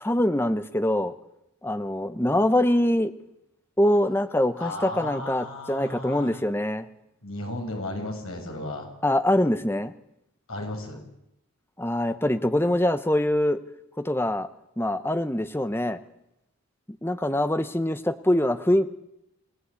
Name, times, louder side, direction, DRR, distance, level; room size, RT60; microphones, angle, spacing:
voice 1, 0.0-1.1 1.6-3.1 3.8-6.9 9.0-9.9 11.8-13.6 14.0-14.5 14.8-16.0 17.0-18.9, left 1 dB, 10° left, 11 dB, 0.9 m, -24 dB
voice 2, 4.6-6.4 7.2-8.9 10.5-11.0, left 2 dB, 70° left, 3 dB, 6.3 m, -34 dB
28.0 x 19.0 x 8.4 m, 0.85 s
head